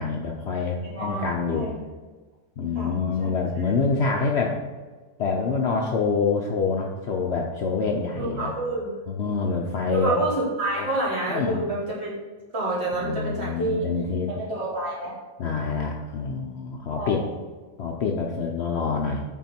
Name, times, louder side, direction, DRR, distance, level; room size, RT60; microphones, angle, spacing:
voice 1, 0.0-1.7 2.6-4.6 5.2-8.5 9.1-10.2 10.7-10.9 11.3-11.6 13.0-14.3 15.4-17.2 17.8-19.2, left 4 dB, 60° left, 0 dB, 0.7 m, -26 dB
voice 2, 0.8-1.7 2.7-3.3 8.2-9.0 9.9-12.2 12.5-13.9 14.3-15.1 16.9-17.3, right 2 dB, 45° right, -6 dB, 2.1 m, -28 dB
5.8 x 4.5 x 4.3 m, 1.3 s
omnidirectional pair, 1.5 m